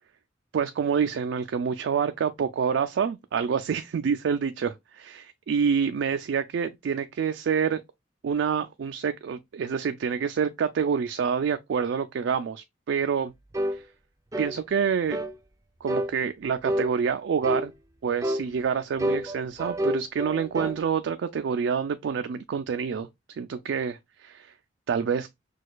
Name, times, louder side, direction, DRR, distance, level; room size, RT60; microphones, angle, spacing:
voice 1, 0.5-4.7 5.0-7.8 8.2-13.3 13.7-13.8 14.4-15.2 15.8-17.7 18.0-24.5 24.9-25.3, right 6 dB, 85° right, 0.3 m, -27 dB
sound 1, 13.5-13.8 14.3-14.6 15.1-15.4 15.9-16.1 16.6-16.9 17.4-17.7 18.2-18.5 19.0-20.8, equal, 20° right, 0.4 m, -28 dB
6.2 x 2.3 x 2.3 m
head